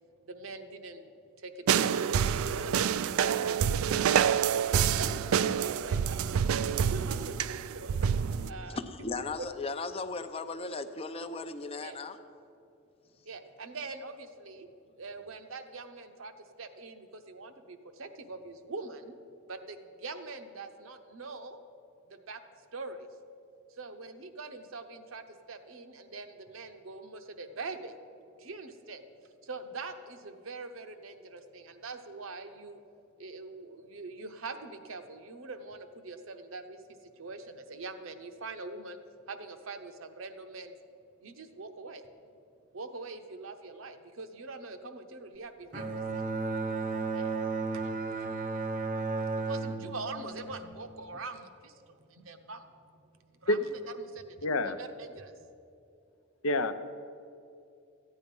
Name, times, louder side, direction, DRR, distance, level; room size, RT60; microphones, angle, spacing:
voice 1, 0.2-1.1 1.4-2.0 2.5-4.3 4.9-6.4 6.8-8.0 8.5-8.8 9.2-9.3 11.8-12.0 13.2-14.7 15.0-16.3 16.6-19.2 19.5-21.6 22.1-22.4 22.7-23.1 23.7-28.0 28.4-29.0 29.4-32.8 33.2-39.0 39.3-40.7 41.2-42.1 42.7-46.2 47.1-47.4 47.7-47.9 49.4-55.5, right 3 dB, 70° right, 7 dB, 0.8 m, -43 dB
sound 1, 1.7-8.5, right 8 dB, 90° right, 0.4 m, -27 dB
voice 2, 8.4-12.2, left 3 dB, 30° left, 10 dB, 0.5 m, -37 dB
Bowed string instrument, 45.7-51.2, right 3 dB, 40° right, 0.7 m, -34 dB
voice 3, 54.4-54.8 56.4-56.9, left 1 dB, 75° left, 10 dB, 0.7 m, -27 dB
14.0 x 9.2 x 5.4 m, 2.6 s
head